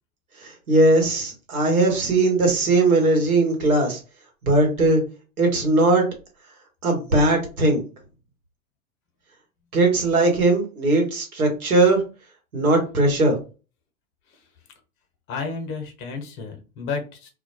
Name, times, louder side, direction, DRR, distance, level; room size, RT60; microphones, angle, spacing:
voice 1, 0.4-4.0 4.4-5.0 5.4-6.1 6.8-7.8 9.7-12.0 12.5-13.4, right 2 dB, 85° right, 2 dB, 1.1 m, -19 dB
voice 2, 15.3-17.3, left 4 dB, 30° left, 5 dB, 0.7 m, -31 dB
2.2 x 2.1 x 2.8 m, 0.33 s
hypercardioid pair, 95°, 42 cm